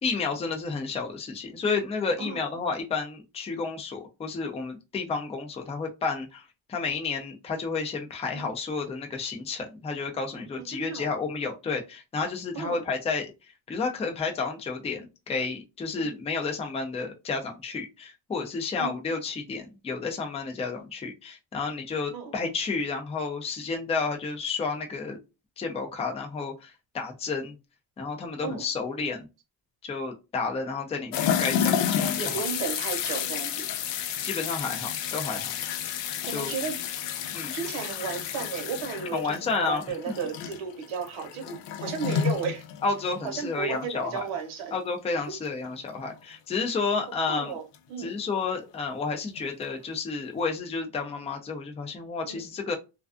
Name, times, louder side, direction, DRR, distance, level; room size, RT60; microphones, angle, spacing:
voice 1, 0.0-6.4 6.7-13.3 13.7-15.0 15.3-25.2 25.6-27.5 28.0-29.3 29.8-32.4 34.2-35.5 36.2-36.5 37.3-37.5 39.1-39.8 42.8-44.3 44.7-47.6 48.0-52.7, left 4 dB, 15° left, 0.4 m, -31 dB
voice 2, 2.2-2.5 8.3-8.5 10.7-11.1 12.5-12.8 15.9-16.1 18.8-18.9 22.1-22.3 28.4-28.7 32.2-33.7 36.3-36.8 37.5-42.6 43.2-44.8 47.3-47.6 47.9-48.2 52.3-52.4, right 6 dB, 85° right, 0.9 m, -34 dB
sound 1, 31.1-43.5 43.8-43.9 45.9-46.0 47.7-47.8 49.4-49.5 50.4-50.5, left 8 dB, 65° left, 0.5 m, -31 dB
2.3 x 2.3 x 2.3 m
cardioid pair, 120°, 47 cm